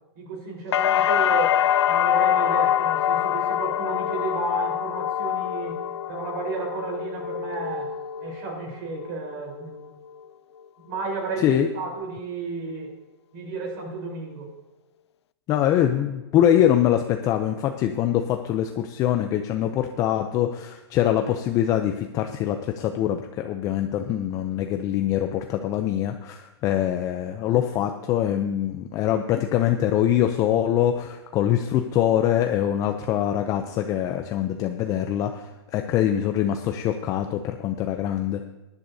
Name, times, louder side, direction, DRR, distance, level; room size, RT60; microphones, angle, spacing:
voice 1, 0.2-1.6 1.9-9.9 10.8-13.0 13.3-14.5, right 4 dB, 50° right, 1 dB, 4.0 m, -33 dB
sound 1, 0.7-8.6 9.0-9.7, left 10 dB, 75° left, 0.5 m, -24 dB
voice 2, 15.5-38.4, left 11 dB, 25° left, 6 dB, 0.5 m, -23 dB
18.0 x 10.5 x 2.7 m, 1.0 s
hypercardioid pair, 150°, 14 cm